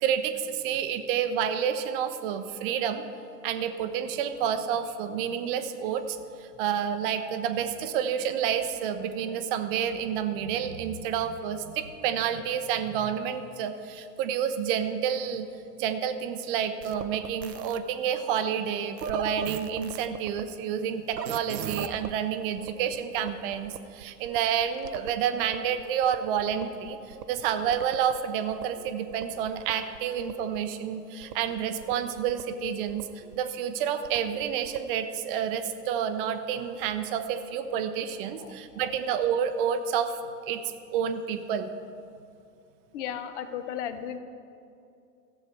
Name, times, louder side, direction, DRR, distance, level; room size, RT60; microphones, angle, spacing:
voice 1, 0.0-3.0 3.4-15.5 15.8-33.1 33.3-40.2 40.4-40.6 40.9-41.7, right 8 dB, 35° right, 9 dB, 0.7 m, -29 dB
sound 1, 16.8-17.8 19.0-20.4 21.1-22.1 22.6-25.1 25.4-28.2 28.5-30.6 31.2-33.4 34.0-34.9, right 7 dB, 80° right, 0.7 m, -40 dB
voice 2, 42.9-44.2, left 9 dB, 45° left, 10 dB, 0.9 m, -34 dB
14.0 x 7.5 x 4.6 m, 2.5 s
hypercardioid pair, 110°, 48 cm